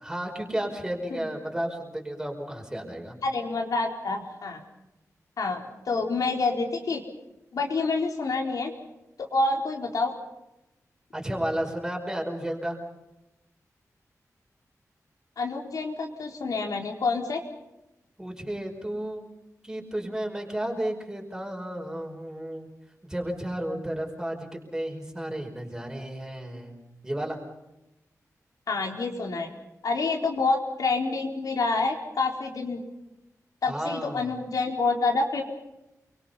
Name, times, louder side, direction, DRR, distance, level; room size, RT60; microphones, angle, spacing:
voice 1, 0.0-3.2 11.1-12.8 18.2-19.2 19.6-22.7 23.0-24.5 24.7-26.8 27.0-27.4 33.7-34.3, right 1 dB, 10° right, 1 dB, 5.3 m, -32 dB
voice 2, 3.2-4.6 5.4-7.0 7.5-8.7 9.2-10.1 15.4-17.4 28.7-29.5 29.8-32.8 33.6-35.4, left 3 dB, 80° left, 2 dB, 4.1 m, -27 dB
29.5 x 24.0 x 5.6 m, 0.93 s
wide cardioid pair, 145°, 6 cm